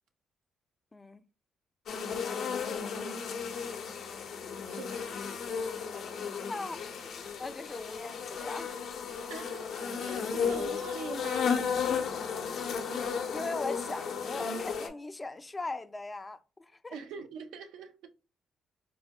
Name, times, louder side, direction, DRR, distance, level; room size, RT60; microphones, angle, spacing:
sound 1, 1.9-14.9, left 6 dB, 65° left, 0.5 m, -34 dB
voice 1, 4.6-5.0 9.3-11.8 16.9-18.1, right 6 dB, 85° right, 0.5 m, -44 dB
voice 2, 6.3-6.8 7.4-8.7 13.3-17.0, left 3 dB, 20° left, 0.3 m, -39 dB
3.9 x 2.1 x 2.7 m
cardioid pair, 90°, 0 cm